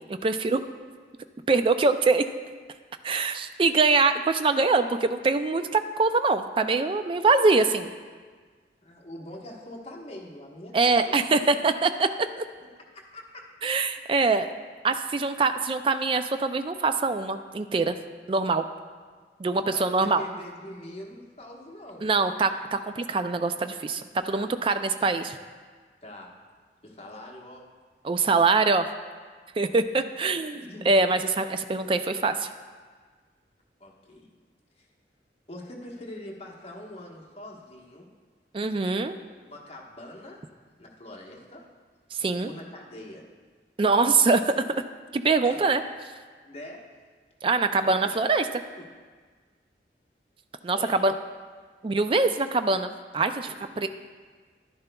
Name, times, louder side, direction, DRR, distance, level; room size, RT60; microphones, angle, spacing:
voice 1, 0.1-0.7 1.5-2.3 3.0-7.9 10.7-12.1 12.4-12.5 13.6-14.5 14.8-18.0 18.3-18.7 19.4-20.2 22.0-25.4 28.0-28.9 29.6-32.5 38.5-39.2 42.1-42.5 43.8-44.8 45.1-45.8 47.4-48.4 50.6-51.1 51.8-53.5 53.8-53.9, right 3 dB, 30° right, 10 dB, 0.3 m, -23 dB
voice 2, 8.8-11.1 11.4-11.5 12.9-13.4 19.7-22.0 24.3-24.5 26.0-26.3 26.8-27.7 30.5-30.9 33.8-34.3 34.8-34.9 35.5-38.1 39.5-40.4 40.8-41.6 42.4-43.2 45.4-45.7 46.4-46.9 47.8-48.9 50.5-51.1 53.4-53.9, left 1 dB, 35° left, -2 dB, 1.2 m, -43 dB
11.0 x 10.5 x 2.3 m, 1.5 s
head